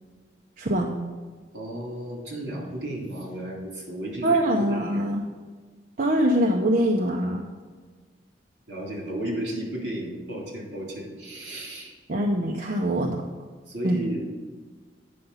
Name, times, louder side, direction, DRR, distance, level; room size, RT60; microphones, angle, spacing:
voice 1, 0.6-1.0 4.2-5.2 6.0-7.4 12.1-13.2 13.8-14.1, right 1 dB, 50° right, 0 dB, 0.6 m, -23 dB
voice 2, 1.5-4.4 4.7-5.0 8.7-11.9 13.7-14.2, right 1 dB, 75° right, -2 dB, 3.0 m, -33 dB
9.3 x 5.8 x 5.5 m, 1.5 s
head